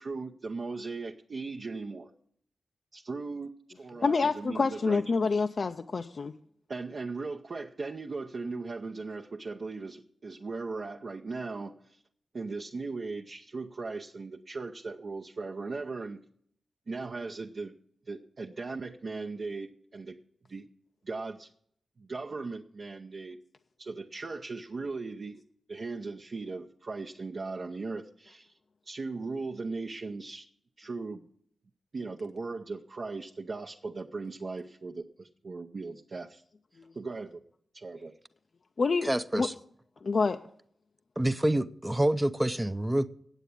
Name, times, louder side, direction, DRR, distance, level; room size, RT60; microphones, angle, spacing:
voice 1, 0.0-2.1 2.9-5.0 6.7-12.0 12.3-16.2 16.9-17.7 18.1-20.2 20.5-20.7 21.0-21.5 22.0-23.4 23.8-25.4 25.7-28.5 28.8-30.5 30.8-31.3 31.9-36.4 36.9-37.4 37.7-38.1, right 3 dB, 50° right, 0.7 m, -38 dB
voice 2, 4.0-6.3 38.8-39.1 39.4-39.5 40.0-40.4, left 4 dB, 50° left, 0.4 m, -27 dB
voice 3, 39.0-39.5 41.2-43.1, right 1 dB, 10° right, 0.5 m, -27 dB
9.1 x 8.1 x 8.4 m
wide cardioid pair, 100°, 0 cm